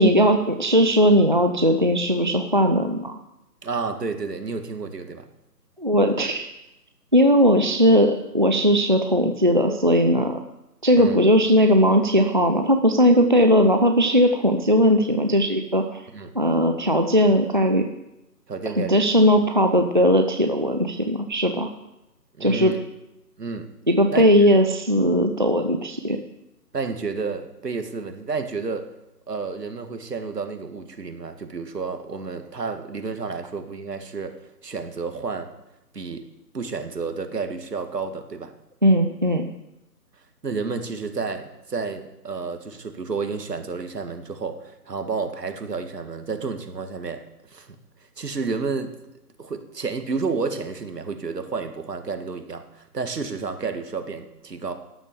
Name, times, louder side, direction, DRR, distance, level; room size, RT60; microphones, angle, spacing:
voice 1, 0.0-3.2 5.8-6.5 7.1-10.4 10.8-16.0 16.3-17.8 18.8-21.7 22.4-22.7 23.9-26.2 38.8-39.5, equal, 30° right, 5 dB, 0.5 m, -18 dB
voice 2, 3.6-5.3 11.0-11.2 16.1-16.3 18.5-19.0 22.4-22.8 23.4-23.7 24.1-24.5 26.7-28.8 29.3-34.4 34.6-35.5 35.9-36.2 36.5-38.5 40.4-47.2 47.5-47.8 48.2-49.0 49.4-54.7, right 4 dB, 70° right, 7 dB, 2.1 m, -30 dB
12.5 x 9.1 x 6.8 m, 0.91 s
figure-of-eight pair, 160°, 49 cm